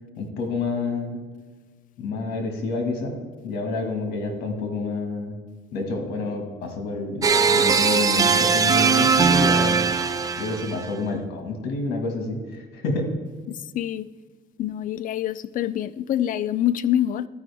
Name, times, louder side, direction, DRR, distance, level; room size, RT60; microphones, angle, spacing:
voice 1, 0.2-1.2 2.0-3.2 3.4-5.4 5.7-9.8 10.3-13.1, left 3 dB, 80° left, 3 dB, 1.8 m, -28 dB
sound 1, 7.2-10.9, right 5 dB, 20° right, 0.4 m, -20 dB
voice 2, 13.5-14.1 14.6-17.3, left 11 dB, 55° left, 16 dB, 0.4 m, -25 dB
13.0 x 5.0 x 3.5 m, 1.4 s
cardioid pair, 110°, 17 cm